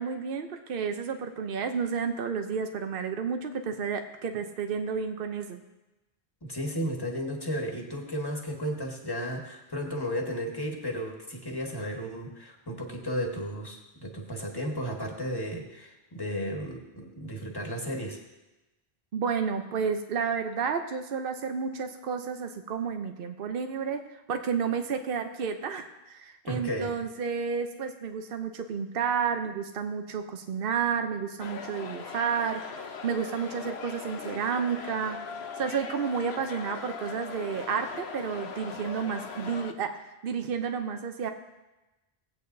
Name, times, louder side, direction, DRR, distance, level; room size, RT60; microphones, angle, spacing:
voice 1, 0.0-5.6 19.1-24.0 24.3-32.6 33.0-35.2 35.6-41.3, right 6 dB, 65° right, 5 dB, 0.9 m, -31 dB
voice 2, 6.4-18.2 26.4-26.9, equal, 20° left, 0 dB, 1.6 m, -34 dB
sound 1, 31.4-39.7, left 5 dB, 90° left, 1.1 m, -40 dB
18.5 x 8.5 x 2.7 m, 1.0 s
omnidirectional pair, 1.0 m